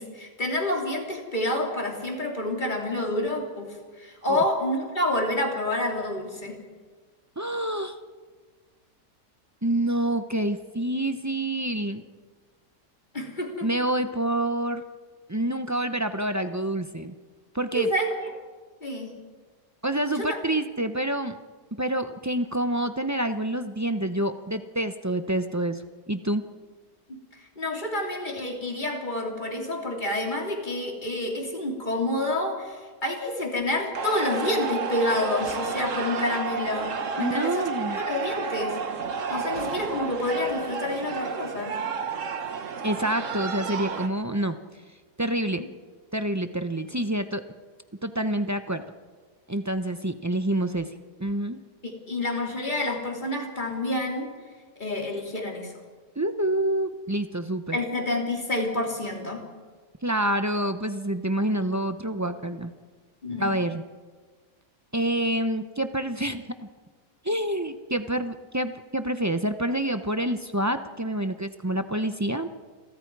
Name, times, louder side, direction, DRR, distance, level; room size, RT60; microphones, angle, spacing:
voice 1, 0.0-6.6 13.1-13.7 17.7-18.1 18.8-19.1 20.2-20.4 27.1-27.2 27.6-37.7 37.9-38.8 39.3-41.8 45.6-45.7 51.8-54.3 54.8-55.7 57.7-59.4 63.2-63.5, left 1 dB, 25° left, 1 dB, 3.4 m, -28 dB
voice 2, 7.4-8.0 9.6-12.0 13.6-14.8 15.3-17.1 17.5-17.9 19.8-21.4 21.7-26.4 37.2-38.0 42.8-44.6 45.2-45.6 46.1-47.4 48.0-48.8 49.5-50.9 51.2-51.6 56.2-57.8 60.0-62.7 63.4-63.8 64.9-66.4 67.2-72.5, right 1 dB, 25° right, 8 dB, 0.3 m, -27 dB
sound 1, 33.9-44.1, right 5 dB, 50° right, 1.6 m, -31 dB
29.5 x 23.0 x 4.8 m, 1.5 s
omnidirectional pair, 1.8 m